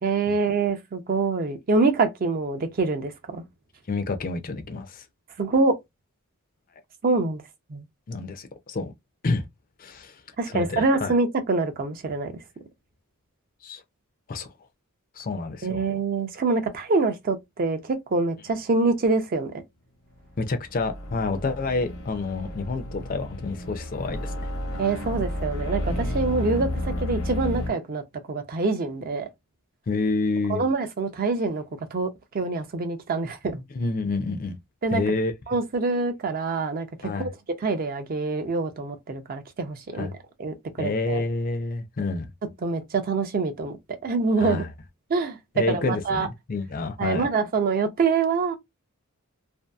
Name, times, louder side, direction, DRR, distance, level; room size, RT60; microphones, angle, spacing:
voice 1, 0.0-3.4 5.4-5.8 7.0-7.4 7.7-7.8 10.4-12.4 15.6-19.6 24.8-28.0 28.3-29.3 30.5-31.6 31.9-33.6 34.8-35.0 35.5-37.3 37.6-40.1 40.4-41.2 42.6-44.6 45.1-45.4 45.7-46.3 47.0-48.6, right 3 dB, 40° right, 0.4 m, -25 dB
voice 2, 3.9-5.0 8.1-8.9 9.2-9.4 9.8-10.2 10.5-11.1 13.6-13.8 14.3-14.5 15.2-15.8 20.4-24.3 29.9-30.6 33.7-34.6 34.9-35.3 37.0-37.3 40.0-40.1 40.8-42.3 44.4-44.7 45.6-47.3, left 3 dB, 40° left, 0.4 m, -28 dB
sound 1, 20.2-27.7, left 1 dB, 75° left, 0.8 m, -31 dB
2.6 x 2.3 x 2.2 m
head